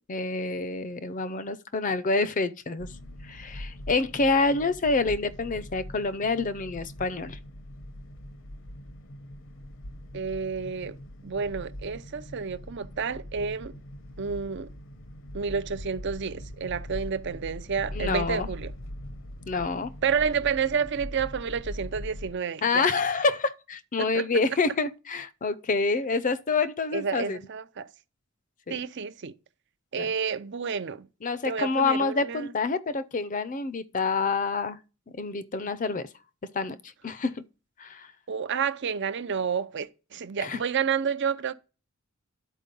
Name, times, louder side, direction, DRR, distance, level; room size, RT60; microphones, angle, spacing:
voice 1, 0.1-2.9 3.2-7.4 17.9-18.5 19.5-19.9 22.6-27.4 28.7-28.8 29.9-30.1 31.2-34.8 35.2-36.1 36.5-36.8 37.0-37.4 37.8-38.1 40.4-40.6, left 4 dB, 40° left, 0.5 m, -27 dB
sound 1, 2.8-22.3, equal, 60° left, 0.8 m, -41 dB
voice 2, 10.1-11.0 11.2-13.8 14.2-14.7 15.3-18.7 20.0-22.9 24.0-24.3 26.9-27.9 28.7-29.3 29.9-31.1 31.4-32.5 38.3-41.5, right 6 dB, 55° right, 0.6 m, -30 dB
11.0 x 4.6 x 5.2 m
head